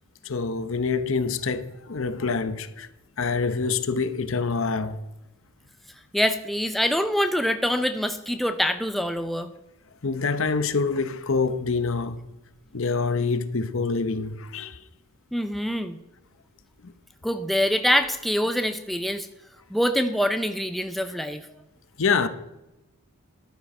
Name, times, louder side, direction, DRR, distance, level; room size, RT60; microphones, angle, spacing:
voice 1, 0.2-2.9 3.2-5.0 10.0-12.2 12.7-14.8 16.8-16.9 22.0-22.3, left 4 dB, 60° left, 0.8 m, -26 dB
voice 2, 6.1-9.5 15.3-16.0 17.2-19.3 19.7-21.5, equal, ahead, 0.5 m, -25 dB
12.0 x 9.2 x 5.4 m
head